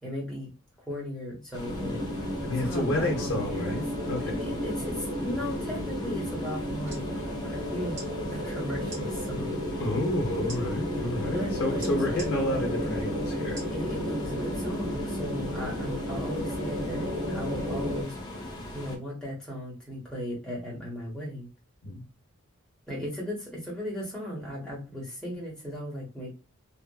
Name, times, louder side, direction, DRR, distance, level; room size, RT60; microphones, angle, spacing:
voice 1, 0.0-0.5 0.8-2.0 2.6-3.8 4.2-7.0 7.4-8.0 8.3-9.6 11.3-12.1 13.7-18.2 18.7-21.5 22.9-26.3, equal, 5° left, -5 dB, 1.1 m, -36 dB
sound 1, 1.5-19.0, left 1 dB, 20° left, 0.5 m, -40 dB
sound 2, 1.6-18.0, equal, 85° right, 0.9 m, -33 dB
voice 2, 2.4-4.3 9.8-13.6 21.8-22.0, left 1 dB, 65° left, -1 dB, 0.7 m, -30 dB
sound 3, 6.8-7.1 7.9-8.1 8.8-9.0 10.5-10.6 11.8-12.3 13.5-13.8 14.3-14.4, right 2 dB, 30° right, 1.3 m, -42 dB
2.7 x 2.4 x 2.2 m, 0.29 s
head